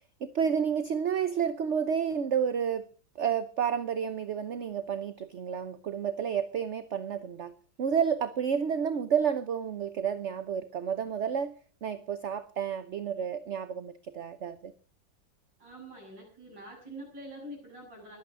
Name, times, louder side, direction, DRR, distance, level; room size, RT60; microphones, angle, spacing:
voice 1, 0.2-2.9 3.1-11.6 11.8-14.7, right 7 dB, 50° right, 12 dB, 0.9 m, -30 dB
voice 2, 15.6-18.2, right 1 dB, 70° right, 0 dB, 8.9 m, -45 dB
20.5 x 8.9 x 6.3 m, 0.39 s
omnidirectional pair, 2.1 m